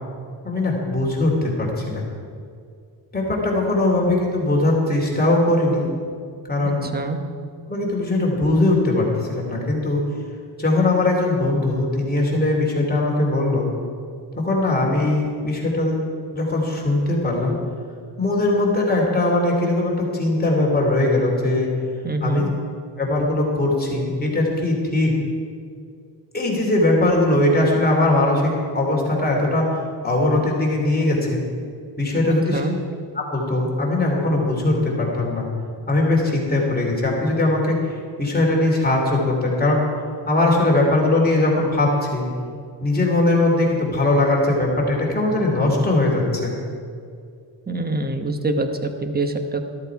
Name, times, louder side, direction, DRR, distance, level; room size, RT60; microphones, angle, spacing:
voice 1, 0.4-2.0 3.1-5.9 6.5-6.9 7.7-10.0 10.6-13.7 14.4-16.0 16.3-17.5 18.2-21.7 22.2-22.5 23.0-25.1 26.3-29.7 30.0-31.4 32.0-32.6 33.1-35.5 35.9-39.8 40.3-42.2 42.8-46.5, left 2 dB, 20° left, -2 dB, 2.9 m, -20 dB
voice 2, 6.6-7.2 22.0-22.5 32.2-32.8 47.7-49.7, right 2 dB, 20° right, 6 dB, 1.1 m, -25 dB
13.5 x 13.0 x 4.8 m, 2.3 s
wide cardioid pair, 135°, 44 cm